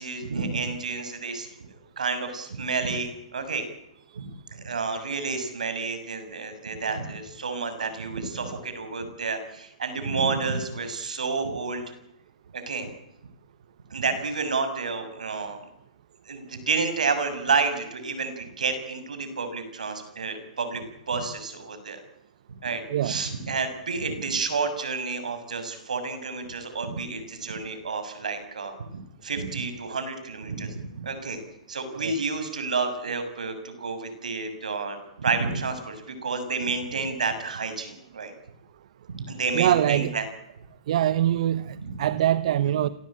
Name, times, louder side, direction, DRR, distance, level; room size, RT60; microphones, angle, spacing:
voice 1, 0.0-1.5 2.0-3.6 4.2-11.9 12.5-12.9 13.9-15.6 16.3-22.0 22.6-31.4 31.7-38.3 39.1-40.2 41.8-42.0, right 4 dB, 85° right, 6.9 m, -30 dB
voice 2, 39.5-40.1 40.9-42.9, right 11 dB, 60° right, 1.0 m, -23 dB
27.5 x 19.0 x 8.9 m
hypercardioid pair, 130°, 4 cm